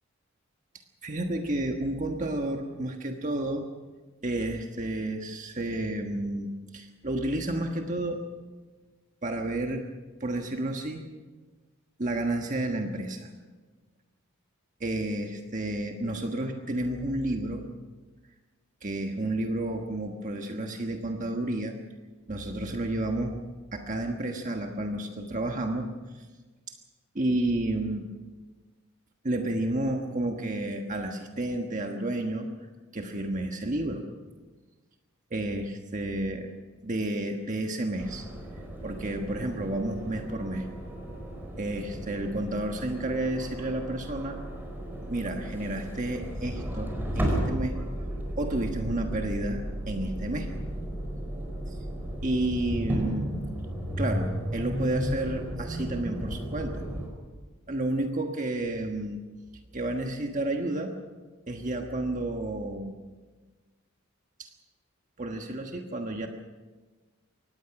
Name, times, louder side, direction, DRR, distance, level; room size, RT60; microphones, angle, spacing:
voice 1, 1.0-3.7 4.2-8.2 9.2-9.9 10.2-11.0 12.0-13.3 14.8-17.7 18.8-21.7 22.3-23.4 23.7-25.9 26.1-26.3 26.7-26.8 27.1-28.1 29.2-32.5 32.9-34.1 35.3-36.5 36.8-38.3 38.8-40.7 41.6-44.4 45.1-47.8 48.4-50.5 51.7-51.8 52.2-53.3 54.0-56.8 57.7-59.2 59.7-61.0 61.5-62.9 64.4-64.5 65.2-66.3, right 1 dB, 35° right, 3 dB, 1.4 m, -31 dB
sound 1, 38.0-57.1, equal, 10° right, 4.6 m, -34 dB
24.0 x 18.5 x 6.0 m, 1.3 s
head